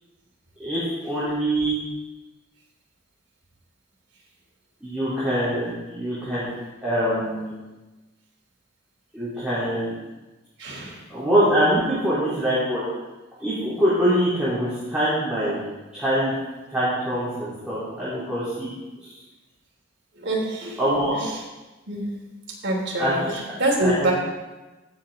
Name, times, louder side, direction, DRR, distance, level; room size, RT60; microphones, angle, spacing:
voice 1, 0.6-1.8 4.8-6.5 6.8-7.5 9.1-10.0 11.1-12.8 13.4-15.6 15.9-16.3 16.7-18.7 19.0-19.1 20.8-21.1 23.0-23.4 23.8-24.1, right 1 dB, 5° right, -13 dB, 3.4 m, -24 dB
voice 2, 10.6-11.0 20.1-20.8 21.1-21.4 21.9-22.1 22.6-24.1, right 1 dB, 60° right, -2 dB, 3.0 m, -25 dB
16.5 x 7.2 x 3.7 m, 1.1 s
head